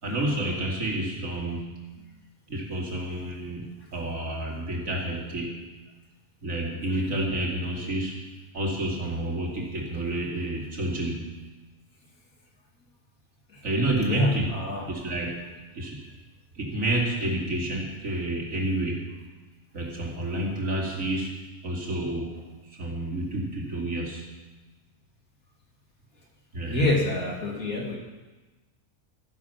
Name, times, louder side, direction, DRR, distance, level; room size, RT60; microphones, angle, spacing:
voice 1, 0.0-1.7 2.5-3.6 3.9-5.6 6.4-8.2 8.5-11.2 13.6-14.5 14.8-15.4 15.7-16.0 16.5-19.0 19.7-21.3 21.6-22.4 22.7-24.2 26.5-26.8, right 1 dB, 60° right, -2 dB, 3.1 m, -29 dB
voice 2, 14.0-14.8 26.6-28.0, left 1 dB, 70° left, -1 dB, 2.9 m, -26 dB
13.5 x 11.0 x 5.9 m, 1.2 s
omnidirectional pair, 1.6 m